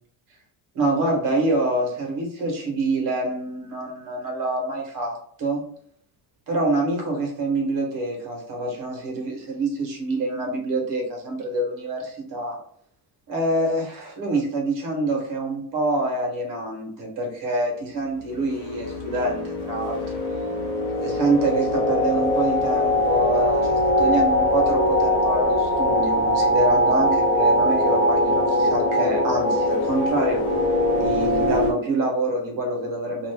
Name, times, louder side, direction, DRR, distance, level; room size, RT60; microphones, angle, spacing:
voice 1, 0.7-5.6 6.5-12.6 13.3-20.0 21.0-30.4 31.0-33.3, right 2 dB, 45° right, 0 dB, 1.1 m, -26 dB
sound 1, 18.3-31.7, left 1 dB, 50° left, 0.7 m, -22 dB
2.5 x 2.4 x 3.3 m, 0.63 s
cardioid pair, 170°, 44 cm